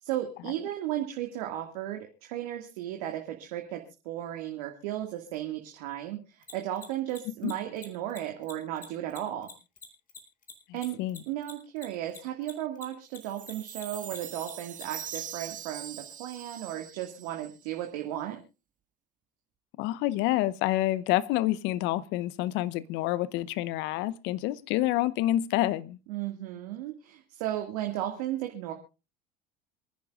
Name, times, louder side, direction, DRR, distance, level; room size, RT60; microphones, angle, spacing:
voice 1, 0.0-9.5 10.7-11.0 11.3-18.4 26.1-28.7, right 12 dB, 75° right, 2.0 m, -35 dB
Mechanisms, 6.4-13.2 13.4-15.2, left 6 dB, 40° left, 4.2 m, -46 dB
voice 2, 10.7-11.2 19.8-26.0, left 15 dB, 60° left, 0.8 m, -28 dB
Chime, 13.2-17.7, right 9 dB, 40° right, 2.0 m, -42 dB
27.5 x 10.5 x 2.5 m
hypercardioid pair, 75°, 21 cm